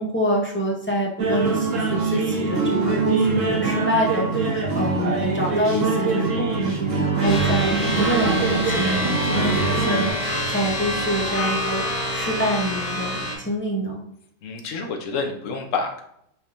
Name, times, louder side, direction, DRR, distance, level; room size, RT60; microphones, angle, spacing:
voice 1, 0.0-11.9 12.1-14.0, equal, 10° left, -3 dB, 0.6 m, -26 dB
sound 1, 1.2-10.1, right 3 dB, 90° right, 1.4 m, -23 dB
sound 2, 7.2-13.3, left 1 dB, 35° left, 0.9 m, -26 dB
voice 2, 14.4-16.0, left 4 dB, 85° left, 4 dB, 1.1 m, -28 dB
5.3 x 3.5 x 2.5 m, 0.73 s
omnidirectional pair, 1.3 m